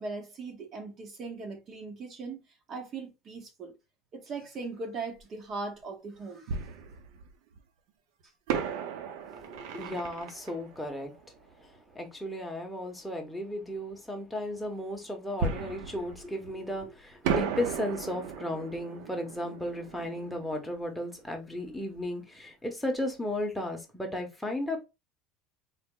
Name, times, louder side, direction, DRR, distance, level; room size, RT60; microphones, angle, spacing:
voice 1, 0.0-2.4 2.7-3.7 4.1-6.7, right 3 dB, 35° right, 0.8 m, -39 dB
Fireworks, 5.2-5.3 6.5-7.6 8.5-11.9 15.4-16.8 17.2-21.8 22.0-22.1 22.7-22.9, right 6 dB, 75° right, 0.6 m, -36 dB
voice 2, 9.3-11.1 11.6-11.7 11.9-24.8, left 1 dB, ahead, 0.9 m, -35 dB
4.0 x 2.0 x 3.6 m
cardioid pair, 150°, 0 cm